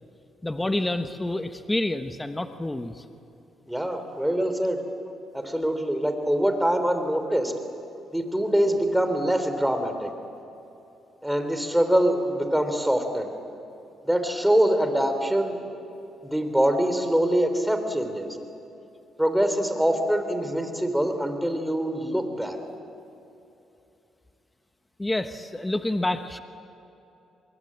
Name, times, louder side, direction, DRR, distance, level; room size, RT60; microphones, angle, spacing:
voice 1, 0.4-3.0 25.0-26.4, left 1 dB, 15° left, 8 dB, 1.1 m, -28 dB
voice 2, 3.7-4.8 5.3-7.5 8.1-10.1 11.2-13.3 14.0-15.6 16.2-18.4 19.2-22.6, right 1 dB, 5° right, 7 dB, 3.4 m, -24 dB
25.0 x 22.0 x 8.6 m, 2.9 s
cardioid pair, 90°, 0 cm